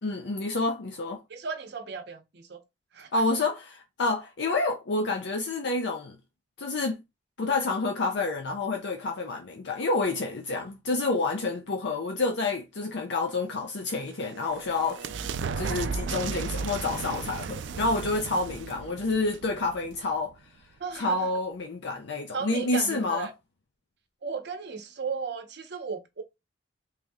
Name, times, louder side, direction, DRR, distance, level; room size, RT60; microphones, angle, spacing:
voice 1, 0.0-1.2 3.1-6.2 6.6-7.0 7.4-15.2 15.5-20.3 20.9-23.3, left 3 dB, 65° left, 0.5 m, -28 dB
voice 2, 1.3-2.6 2.9-3.1 20.8-21.3 22.3-23.3 24.2-26.2, right 5 dB, 65° right, 0.7 m, -35 dB
sound 1, 13.9-20.3, right 5 dB, 85° right, 0.4 m, -35 dB
3.3 x 2.7 x 3.4 m
head